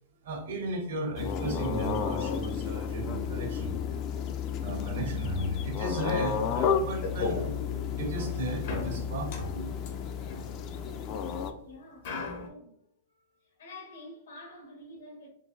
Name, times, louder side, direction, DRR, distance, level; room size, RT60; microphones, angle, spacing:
voice 1, 0.2-3.8 4.6-7.6 8.0-9.8, right 2 dB, 75° right, 1.1 m, -35 dB
sound 1, 1.2-11.5, left 7 dB, 35° left, 0.3 m, -32 dB
sound 2, 7.0-7.5 8.6-11.3 12.0-12.5, left 3 dB, 60° left, 0.7 m, -37 dB
voice 2, 11.6-12.8 13.1-15.3, left 1 dB, 85° left, 1.4 m, -49 dB
3.8 x 2.4 x 2.5 m
hypercardioid pair, 135°, 0 cm